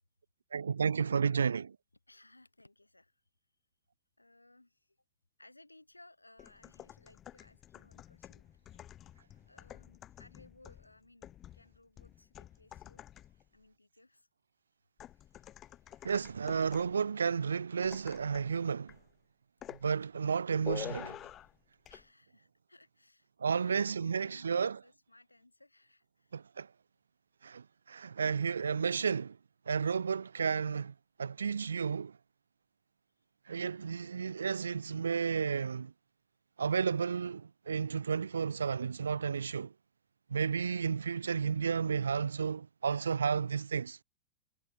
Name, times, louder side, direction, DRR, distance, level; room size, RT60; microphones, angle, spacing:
voice 1, 0.5-1.8 16.0-19.0 19.8-21.2 23.4-24.8 26.3-26.7 27.4-29.4 29.7-30.9 31.2-32.1 33.5-35.9 36.6-39.7 40.3-44.0, right 6 dB, 70° right, 0.6 m, -32 dB
voice 2, 2.1-3.2 4.2-5.0 5.4-8.8 9.5-13.0 13.5-14.3 21.9-26.4 42.9-43.1, left 2 dB, 85° left, 5.3 m, -61 dB
sound 1, 6.4-13.5 15.0-17.0 17.8-18.6 18.9-19.1 19.6-19.9 20.7-21.6 21.9-22.0, left 12 dB, 30° left, 2.0 m, -49 dB
figure-of-eight pair, 90°, 0 cm